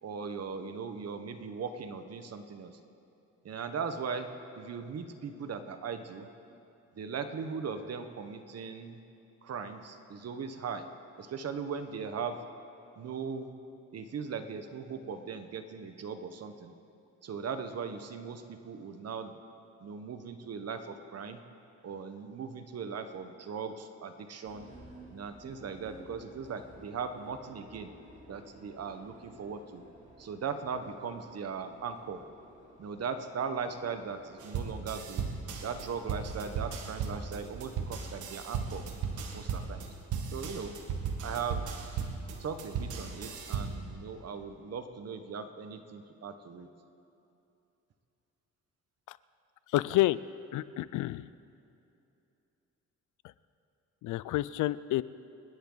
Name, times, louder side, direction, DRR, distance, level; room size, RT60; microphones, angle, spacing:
voice 1, 0.0-2.8 3.4-4.3 4.6-6.3 6.9-9.0 9.4-10.9 11.2-12.4 13.0-13.5 13.9-16.7 17.2-19.3 19.8-21.4 21.8-24.7 25.1-27.9 28.3-29.8 30.2-32.2 32.8-35.3 35.6-38.8 39.3-39.8 40.3-40.7 41.2-41.7 42.4-46.7, right 6 dB, 55° right, 8 dB, 1.3 m, -39 dB
sound 1, 24.4-34.8, right 1 dB, 25° right, 2.9 m, -55 dB
sound 2, 34.4-43.9, right 6 dB, 80° right, 1.6 m, -36 dB
voice 2, 49.7-50.2 50.5-51.3 54.0-55.0, left 16 dB, 80° left, 17 dB, 0.5 m, -29 dB
28.5 x 10.5 x 4.0 m, 2.7 s
cardioid pair, 90°, 30 cm